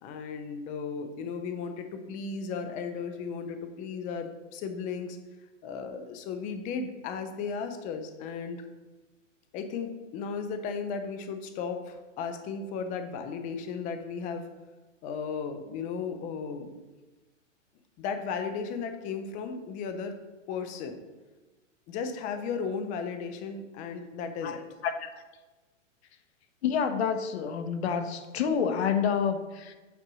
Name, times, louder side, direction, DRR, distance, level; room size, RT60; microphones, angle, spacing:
voice 1, 0.0-5.2 5.6-8.6 9.5-14.5 15.0-16.8 18.0-20.2 20.5-21.0 21.9-24.6, left 5 dB, 20° left, 7 dB, 0.7 m, -35 dB
voice 2, 26.6-29.7, left 7 dB, 55° left, 8 dB, 1.2 m, -28 dB
9.2 x 4.4 x 6.2 m, 1.2 s
hypercardioid pair, 150°, 39 cm